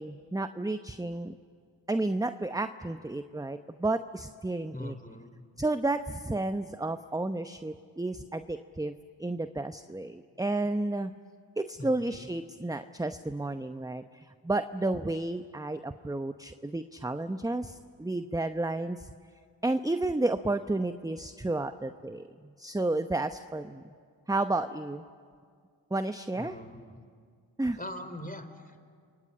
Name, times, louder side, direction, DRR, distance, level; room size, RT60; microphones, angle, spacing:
voice 1, 0.0-1.4 1.9-4.9 5.6-8.9 9.2-11.1 11.6-19.1 19.6-22.3 22.6-23.8 24.3-25.0 25.9-26.6 27.6-27.8, right 2 dB, 5° right, 10 dB, 0.9 m, -31 dB
voice 2, 4.7-5.4 11.8-12.3 26.4-27.0 27.8-28.8, left 1 dB, 15° left, 9 dB, 3.8 m, -42 dB
29.5 x 23.0 x 8.7 m, 2.1 s
supercardioid pair, 40°, 49 cm